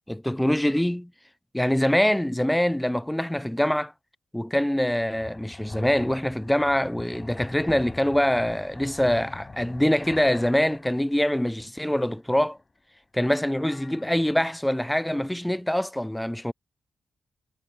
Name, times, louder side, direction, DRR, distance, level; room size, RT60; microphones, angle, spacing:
voice 1, 0.1-1.1 1.5-3.9 4.3-12.6 13.1-16.5, left 1 dB, 5° left, 0.3 m, -24 dB
sound 1, 5.1-11.6 12.0-12.8 13.1-14.9, left 3 dB, 30° left, 5.2 m, -44 dB
wide cardioid pair, 105°, 0 cm